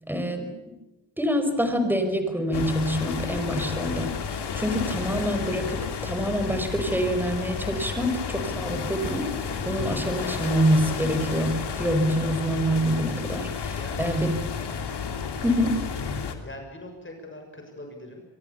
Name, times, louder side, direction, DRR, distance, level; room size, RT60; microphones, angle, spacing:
voice 1, 0.1-0.5 1.2-14.3 15.4-15.8, equal, 5° right, 7 dB, 5.3 m, -26 dB
sound 1, 2.5-16.4, left 6 dB, 60° left, 3.3 m, -32 dB
voice 2, 13.7-14.2 16.2-18.2, left 1 dB, 25° left, 3 dB, 6.9 m, -42 dB
26.0 x 23.0 x 7.1 m, 1.1 s
cardioid pair, 105°, 45 cm